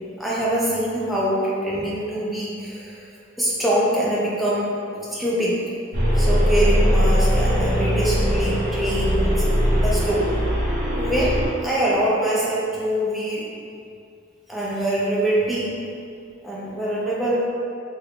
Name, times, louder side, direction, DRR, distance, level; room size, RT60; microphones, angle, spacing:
voice 1, 0.2-3.1 3.4-5.6 6.1-9.3 9.7-10.3 11.0-11.4 11.6-13.4 14.5-15.8 16.4-17.5, right 1 dB, ahead, -7 dB, 0.4 m, -24 dB
sound 1, 5.9-11.5, equal, 45° right, 1.0 m, -20 dB
3.3 x 3.2 x 2.4 m, 2.5 s
head